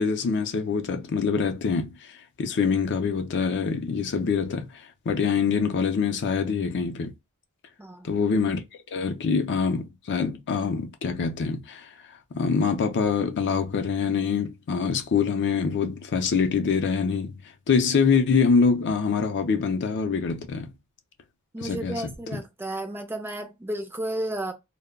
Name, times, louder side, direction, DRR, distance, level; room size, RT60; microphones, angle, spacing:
voice 1, 0.0-1.9 2.4-4.7 5.1-7.1 8.0-8.6 8.9-11.9 12.3-17.4 17.7-20.7 21.6-22.1, left 5 dB, 55° left, 0.4 m, -24 dB
voice 2, 7.8-8.2 21.5-24.5, right 1 dB, 10° right, 0.4 m, -32 dB
2.2 x 2.0 x 3.5 m
head